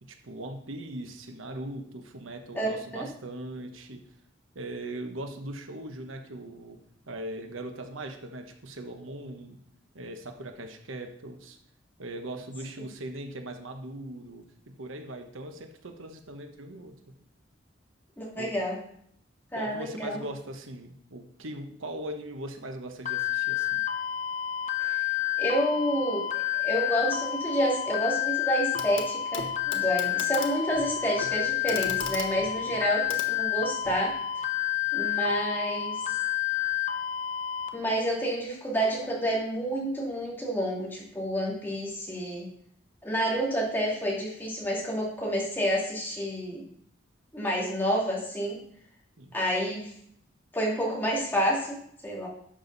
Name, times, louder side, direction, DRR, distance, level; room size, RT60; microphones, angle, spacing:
voice 1, 0.0-4.0 4.5-6.8 7.1-9.6 9.9-11.6 12.0-17.0 18.3-18.5 19.5-23.8 49.2-49.3, right 1 dB, 90° right, 5 dB, 1.2 m, -40 dB
voice 2, 2.5-3.0 18.2-18.8 19.5-20.2 24.8-25.0 25.4-26.3 26.5-34.2 34.9-36.2 37.7-42.5 43.0-46.6 47.3-48.6 49.3-49.9 50.5-52.3, equal, 10° left, -4 dB, 2.5 m, -29 dB
sound 1, 23.1-37.7, left 12 dB, 35° left, 0.8 m, -30 dB
Clock, 28.7-29.1 29.3-34.0 35.3-35.4, left 5 dB, 85° left, 1.3 m, -39 dB
11.5 x 7.1 x 4.1 m, 0.67 s
head